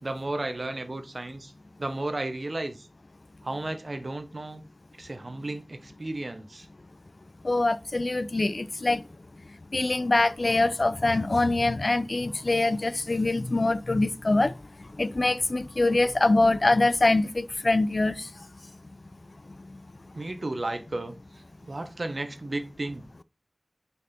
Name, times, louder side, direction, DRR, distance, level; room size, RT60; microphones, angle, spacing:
voice 1, 0.0-1.5 1.8-2.9 3.4-4.6 5.0-6.7 20.1-21.1 21.6-23.2, right 2 dB, 70° right, 0.9 m, -33 dB
voice 2, 7.4-9.0 9.7-14.5 15.0-18.3, left 2 dB, 70° left, 0.4 m, -24 dB
5.4 x 4.3 x 4.2 m
wide cardioid pair, 50°, 0 cm